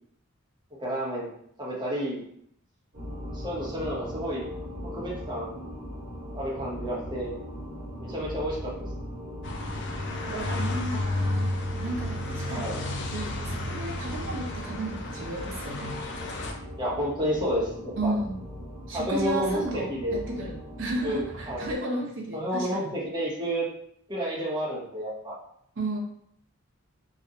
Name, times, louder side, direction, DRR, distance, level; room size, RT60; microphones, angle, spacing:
voice 1, 0.8-1.3 1.6-2.2 3.3-4.4 4.9-5.6 6.3-7.4 8.0-8.9 12.5-12.8 16.8-18.1 18.9-20.2 21.0-21.7 22.3-23.7 24.1-25.3, equal, 20° right, -5 dB, 0.7 m, -30 dB
sound 1, 2.9-21.7, equal, 45° right, 1.0 m, -39 dB
sound 2, 9.4-16.5, left 1 dB, 60° left, 0.4 m, -32 dB
voice 2, 10.3-12.8 13.1-16.0 18.0-18.5 18.9-22.9 25.8-26.0, right 1 dB, 65° right, 0 dB, 0.5 m, -33 dB
2.3 x 2.0 x 2.7 m, 0.69 s
head